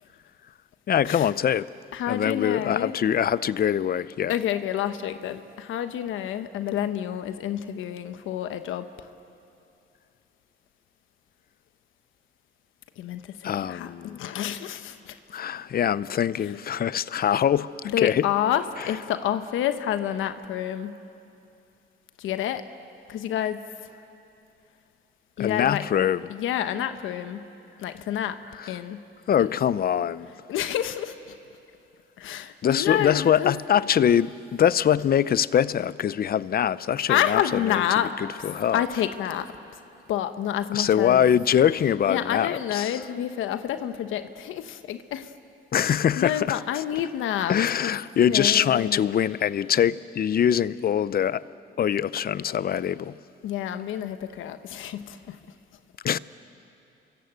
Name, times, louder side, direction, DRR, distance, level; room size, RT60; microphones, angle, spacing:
voice 1, 0.9-1.7 2.1-4.3 13.4-14.2 15.3-18.3 25.4-26.2 28.6-28.7 29.3-30.3 32.6-37.4 37.7-37.8 38.4-38.8 40.7-43.0 45.7-46.8 47.5-51.4 51.8-53.2 56.0-56.2, left 9 dB, 50° left, 0.6 m, -23 dB
voice 2, 1.9-2.9 4.3-8.9 13.0-15.2 17.8-21.0 22.2-22.6 23.1-23.6 25.4-25.8 26.3-27.4 27.8-28.4 28.7-29.0 29.4-29.5 30.5-31.3 32.2-33.5 37.1-38.1 38.7-39.5 40.1-41.3 42.1-45.3 45.8-49.1 53.4-55.4, left 10 dB, 85° left, 1.1 m, -28 dB
30.0 x 24.0 x 8.1 m
cardioid pair, 90°, 20 cm